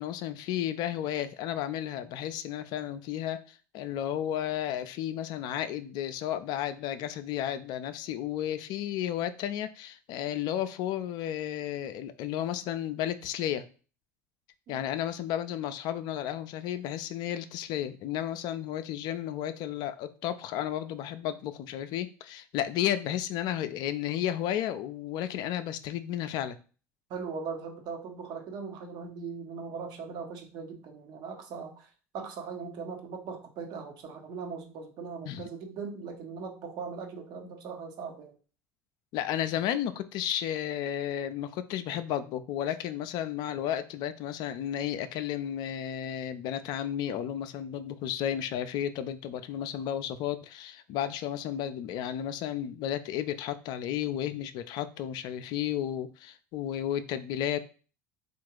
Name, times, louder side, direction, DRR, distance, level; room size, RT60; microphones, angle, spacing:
voice 1, 0.0-13.6 14.7-26.6 35.3-35.4 39.1-57.6, left 11 dB, 55° left, 0.4 m, -33 dB
voice 2, 27.1-38.4, right 5 dB, 55° right, 1.2 m, -39 dB
3.7 x 2.5 x 4.5 m
hypercardioid pair, 70°, 9 cm